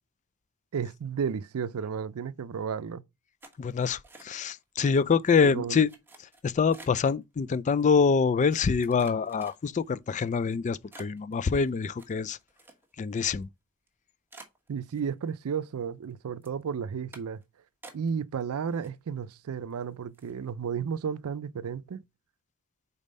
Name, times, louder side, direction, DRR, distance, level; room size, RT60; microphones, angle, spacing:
voice 1, 0.7-3.0 5.4-5.8 14.7-17.4 17.9-22.0, right 6 dB, 85° right, 0.4 m, -33 dB
sound 1, 3.4-4.6 4.9-5.3 5.9-7.1 7.8-7.9 8.5-9.9 10.4-10.5 10.9-13.1 13.4-13.5 13.9-14.0 14.3-15.4 15.7-16.1 16.4-16.6 17.1-17.4 17.8-18.4 18.7-19.3 19.7-19.8 20.1-20.4, right 2 dB, 10° right, 1.1 m, -52 dB
voice 2, 3.6-5.9 6.4-12.4 13.0-13.5, left 5 dB, 35° left, 0.3 m, -25 dB
5.2 x 4.1 x 5.3 m
head